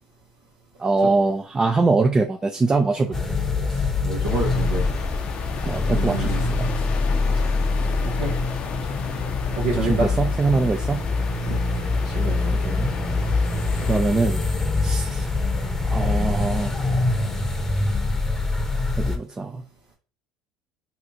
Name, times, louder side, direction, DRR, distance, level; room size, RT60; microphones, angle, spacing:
voice 1, 0.8-3.3 5.6-6.8 9.7-11.1 12.6-12.9 13.8-14.4 14.8-15.3 15.9-16.7 19.0-19.6, right 3 dB, 20° right, 4 dB, 0.4 m, -23 dB
sound 1, 3.1-19.2, left 3 dB, 15° left, 0.8 m, -24 dB
voice 2, 3.7-4.9 5.9-6.4 8.2-8.4 9.5-10.1 11.5-11.6 12.0-12.6, right 3 dB, 80° right, -4 dB, 0.9 m, -28 dB
sound 2, 4.2-14.0, left 7 dB, 50° left, 0.5 m, -36 dB
2.8 x 2.4 x 4.1 m, 0.36 s
hypercardioid pair, 70°, 3 cm